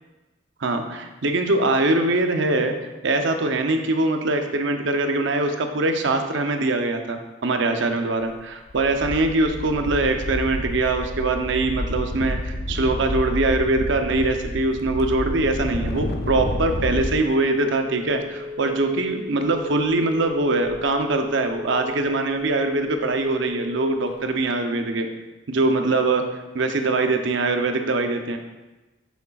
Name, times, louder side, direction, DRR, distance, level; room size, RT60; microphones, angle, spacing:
voice 1, 0.6-2.7 3.0-25.1 25.5-26.2 26.5-28.4, right 2 dB, 70° right, 5 dB, 0.7 m, -22 dB
sound 1, 8.2-8.4 8.7-17.2, left 1 dB, 55° left, 0.7 m, -29 dB
Telephone, 17.4-24.4, left 3 dB, 30° right, 1.3 m, -36 dB
8.2 x 8.0 x 2.4 m, 1.1 s
head